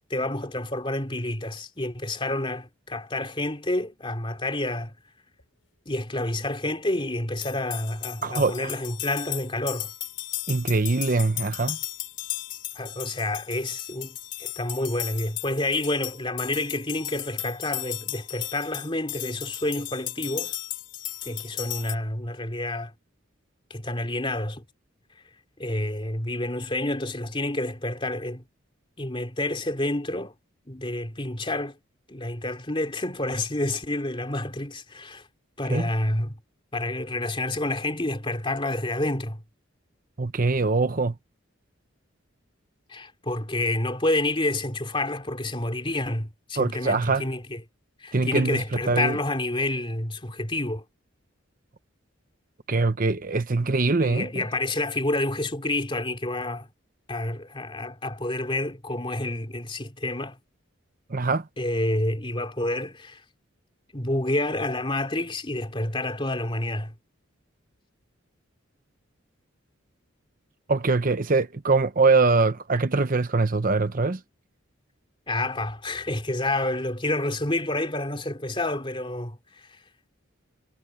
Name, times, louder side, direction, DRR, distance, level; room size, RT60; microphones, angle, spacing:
voice 1, 0.1-4.9 5.8-9.9 12.7-20.5 21.2-22.9 23.7-24.6 25.6-28.4 29.0-30.3 30.7-31.8 32.1-35.3 35.6-36.4 36.7-39.4 42.9-47.6 48.0-50.8 53.3-53.4 54.0-56.7 57.1-60.4 61.6-63.2 63.9-66.9 75.3-79.8, left 1 dB, 25° left, 2.9 m, -29 dB
sound 1, 7.4-21.9, left 14 dB, 75° left, 7.3 m, -35 dB
voice 2, 8.2-8.7 10.5-11.8 35.7-35.9 40.2-41.1 46.6-47.2 48.1-48.6 48.9-49.2 52.7-54.4 61.1-61.5 70.7-74.2, right 3 dB, 40° right, 0.8 m, -23 dB
head